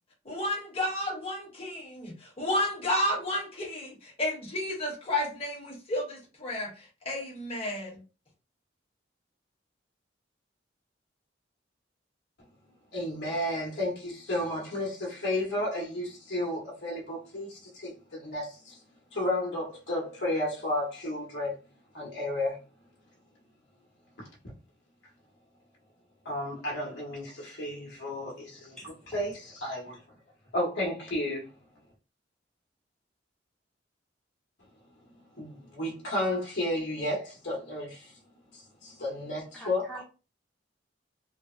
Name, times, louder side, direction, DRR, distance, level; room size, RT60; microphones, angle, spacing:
voice 1, 0.2-8.0, left 1 dB, 30° left, 1.2 m, -32 dB
voice 2, 12.9-18.8 19.1-21.5 21.9-22.6 26.2-30.0 30.5-31.5 35.4-38.0 38.8-40.0, left 1 dB, 75° left, 1.1 m, -32 dB
voice 3, 39.5-40.0, right 1 dB, 5° left, 0.5 m, -44 dB
3.1 x 2.1 x 2.5 m
head